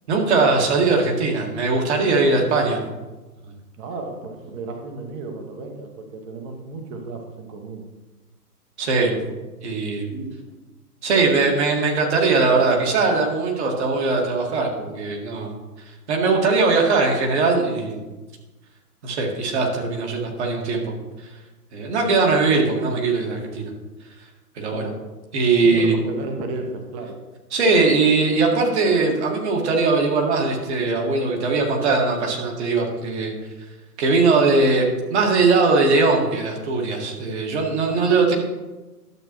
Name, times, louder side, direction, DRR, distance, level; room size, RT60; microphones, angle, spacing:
voice 1, 0.1-2.8 8.8-9.2 9.6-10.1 11.0-15.6 16.1-18.0 19.0-20.8 21.7-23.6 24.6-24.9 25.3-25.9 27.5-33.3 34.0-38.3, right 3 dB, 45° right, 0 dB, 1.9 m, -20 dB
voice 2, 3.8-7.8 10.1-10.4 24.7-24.9 25.6-27.2 37.8-38.3, right 3 dB, 20° right, 3 dB, 0.9 m, -33 dB
12.0 x 7.5 x 3.0 m, 1.2 s
figure-of-eight pair, 125°, 47 cm